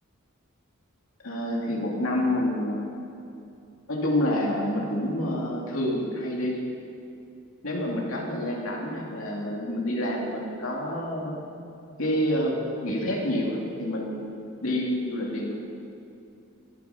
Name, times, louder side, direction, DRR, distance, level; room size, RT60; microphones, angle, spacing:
voice 1, 1.2-2.9 3.9-6.7 7.6-11.3 12.0-15.6, left 1 dB, 80° left, -2 dB, 2.7 m, -28 dB
24.5 x 9.0 x 5.9 m, 2.7 s
head